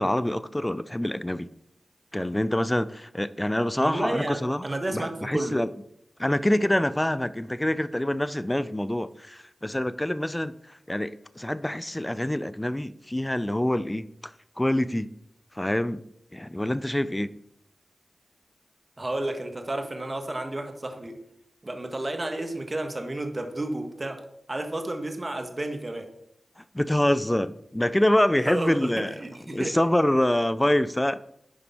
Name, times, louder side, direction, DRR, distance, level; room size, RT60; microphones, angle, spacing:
voice 1, 0.0-1.5 2.1-4.6 4.9-5.7 6.2-15.1 15.5-16.1 16.3-17.3 26.6-29.1 29.5-31.2, left 1 dB, 15° left, 0.5 m, -26 dB
voice 2, 3.7-5.6 19.0-21.2 21.6-24.2 24.5-26.1 28.4-29.7, right 1 dB, 35° right, 1.6 m, -31 dB
11.0 x 5.2 x 4.4 m
cardioid pair, 40°, 0 cm